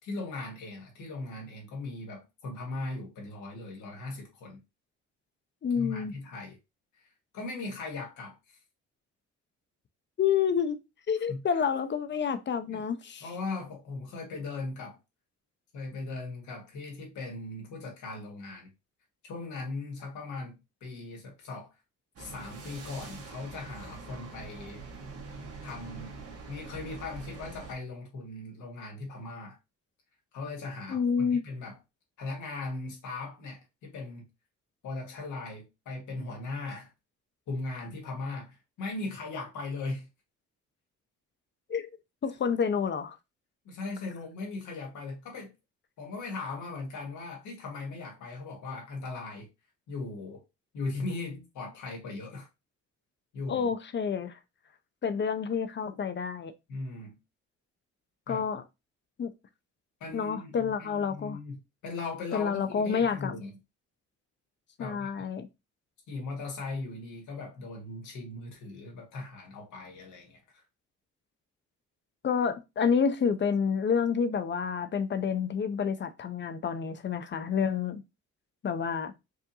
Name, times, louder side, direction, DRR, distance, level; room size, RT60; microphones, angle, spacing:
voice 1, 0.0-4.6 5.7-6.6 7.3-8.6 11.3-11.4 12.7-12.8 13.2-15.0 15.7-18.7 19.3-21.7 22.2-24.8 25.6-26.2 26.5-29.6 30.3-31.8 32.2-34.2 34.8-36.9 37.5-40.1 43.6-45.5 46.0-49.5 49.9-50.4 50.7-52.5 53.3-53.7 56.7-57.2 58.3-58.4 60.0-63.5 64.8-65.1 66.1-70.6, left 3 dB, 75° left, 1.6 m, -38 dB
voice 2, 5.6-6.2 10.2-10.8 11.1-13.3 30.9-31.5 41.7-41.9 42.2-43.2 53.5-54.3 55.0-56.5 58.3-58.6 59.2-59.3 60.1-61.4 62.3-63.3 64.8-65.5 72.2-78.0 78.6-79.1, left 6 dB, 40° left, 0.6 m, -29 dB
sound 1, 22.2-27.7, right 3 dB, 50° right, 1.3 m, -44 dB
4.8 x 2.5 x 2.7 m
cardioid pair, 90°, 30 cm